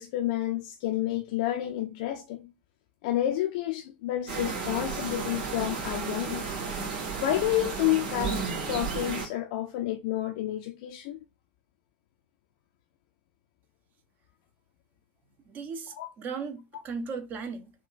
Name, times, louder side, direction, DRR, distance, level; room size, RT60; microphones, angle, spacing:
voice 1, 0.0-2.5 3.0-6.5 6.9-11.2 15.9-16.1, left 13 dB, 55° left, 0.4 m, -30 dB
sound 1, 4.3-9.3, right 5 dB, 60° right, 1.1 m, -33 dB
voice 2, 15.5-17.7, right 5 dB, 35° right, 0.6 m, -37 dB
3.7 x 2.2 x 2.4 m
figure-of-eight pair, 85°, 5 cm